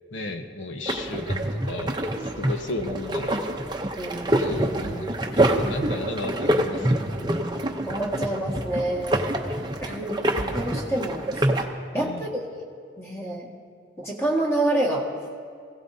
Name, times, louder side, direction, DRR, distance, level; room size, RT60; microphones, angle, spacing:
voice 1, 0.1-3.5 4.4-7.0 11.9-12.3, left 2 dB, 75° left, 5 dB, 1.1 m, -34 dB
sound 1, 0.9-11.7, right 1 dB, 20° right, 0.7 m, -26 dB
voice 2, 4.0-4.5 7.9-9.3 9.8-10.3 10.6-11.5 11.9-12.3 13.0-13.5 14.0-15.0, right 1 dB, 15° left, -3 dB, 1.9 m, -27 dB
21.0 x 16.5 x 2.8 m, 2.2 s
head